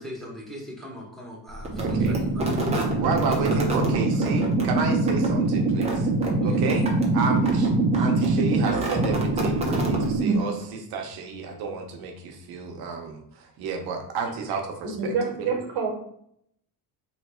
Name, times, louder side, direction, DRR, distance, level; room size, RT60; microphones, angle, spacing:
voice 1, 0.0-2.7 3.3-3.6 6.4-6.7 8.0-8.1, equal, ahead, -4 dB, 1.1 m, -40 dB
sound 1, 1.6-10.6, right 2 dB, 15° right, 0.7 m, -23 dB
voice 2, 1.8-2.2 3.0-6.1 6.4-6.9 7.1-15.1 15.4-15.5, right 5 dB, 65° right, 3 dB, 0.9 m, -31 dB
voice 3, 15.0-15.9, right 5 dB, 85° right, -1 dB, 1.1 m, -27 dB
3.2 x 2.9 x 4.3 m, 0.71 s
cardioid pair, 155°, 40 cm